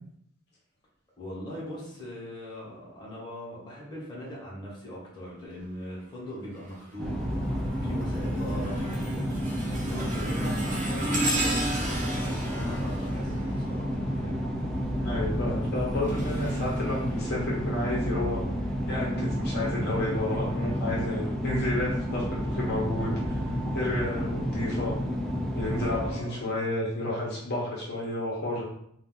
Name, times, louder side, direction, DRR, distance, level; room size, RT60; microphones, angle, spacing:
voice 1, 1.2-14.3 25.9-26.6, equal, 20° left, -7 dB, 1.0 m, -41 dB
sound 1, 6.6-6.9 7.4-14.2 15.5-17.7 18.3-18.5 19.4-19.5, right 1 dB, 35° right, 0.7 m, -34 dB
sound 2, 7.0-26.1, equal, ahead, 0.3 m, -30 dB
voice 2, 15.0-18.4 18.9-23.4 23.7-24.9 25.5-28.6, left 1 dB, 50° left, -5 dB, 0.8 m, -31 dB
2.5 x 2.3 x 3.7 m, 0.71 s
head